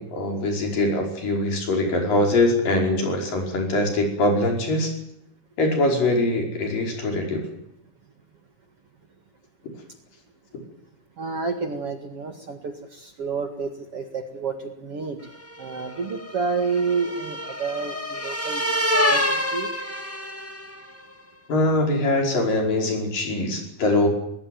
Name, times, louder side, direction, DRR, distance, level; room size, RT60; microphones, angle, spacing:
voice 1, 0.0-4.9 5.6-7.4 21.5-24.1, left 2 dB, 60° left, 2 dB, 6.8 m, -22 dB
voice 2, 11.2-15.2 15.6-18.7 18.9-19.7, right 4 dB, 45° right, 5 dB, 2.4 m, -29 dB
sound 1, 15.5-20.9, left 1 dB, 5° left, 1.0 m, -27 dB
20.5 x 19.5 x 9.4 m, 0.77 s
omnidirectional pair, 4.3 m